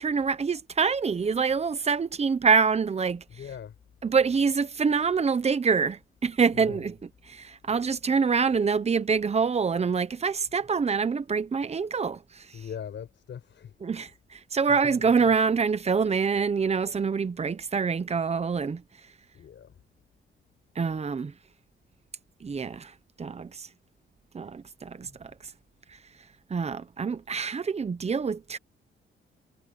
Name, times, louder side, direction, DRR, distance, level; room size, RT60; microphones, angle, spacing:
voice 1, 0.0-3.2 4.0-7.0 7.3-12.6 13.8-18.8 20.8-21.3 22.4-22.9 23.2-23.7 24.3-25.3 26.5-28.6, right 5 dB, 30° right, 1.0 m, -26 dB
voice 2, 3.3-3.7 6.5-6.8 12.5-13.7 14.7-15.0 19.3-19.8 24.9-25.2, left 8 dB, 60° left, 6.7 m, -41 dB
cardioid pair, 130°, 21 cm